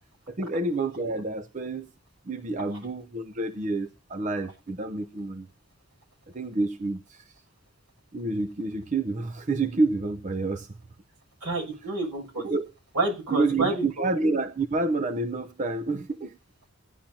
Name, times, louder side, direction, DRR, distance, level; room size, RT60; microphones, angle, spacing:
voice 1, 0.3-1.9 2.2-5.5 6.3-7.4 8.1-10.7 11.8-11.9 12.4-12.7 13.3-16.3, right 3 dB, 35° right, 0.5 m, -28 dB
voice 2, 11.4-12.4 12.9-14.1, right 2 dB, 70° right, 6.7 m, -29 dB
16.0 x 10.0 x 2.8 m
head